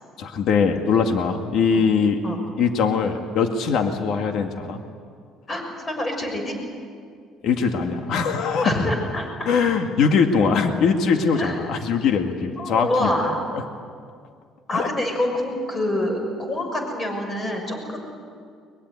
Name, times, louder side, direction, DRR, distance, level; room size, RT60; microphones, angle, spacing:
voice 1, 0.2-2.2 2.6-4.8 7.4-8.7 9.4-13.1 13.5-13.6 14.7-14.9, left 5 dB, 60° left, 5 dB, 2.1 m, -21 dB
voice 2, 5.5-6.6 8.6-9.5 11.3-11.6 12.6-13.4 14.7-18.0, left 1 dB, 25° left, 3 dB, 6.6 m, -26 dB
23.0 x 22.5 x 9.6 m, 2.2 s
cardioid pair, 130°, 0 cm